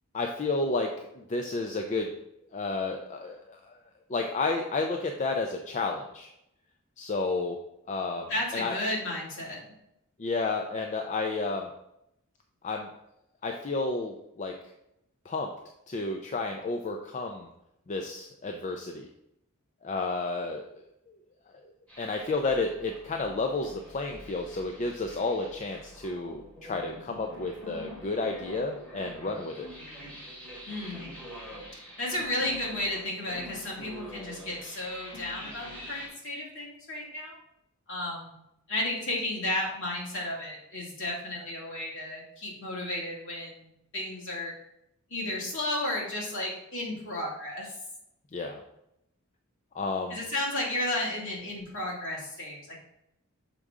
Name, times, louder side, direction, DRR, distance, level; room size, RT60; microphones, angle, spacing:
voice 1, 0.1-2.1 2.5-3.8 4.1-6.3 7.0-7.6 7.9-8.7 10.2-11.7 12.6-12.9 13.4-14.5 15.2-15.5 15.9-17.5 17.9-19.1 19.8-21.2 22.0-29.7 48.3-48.6 49.7-50.2, left 3 dB, 35° left, 3 dB, 0.5 m, -31 dB
voice 2, 8.3-9.6 30.7-31.1 32.0-37.4 37.9-38.3 38.7-43.7 43.9-44.5 45.1-47.7 50.1-52.8, left 1 dB, 60° left, -4 dB, 2.2 m, -33 dB
sound 1, 21.9-36.1, equal, 5° left, 2.2 m, -45 dB
6.7 x 4.9 x 3.6 m, 0.81 s
head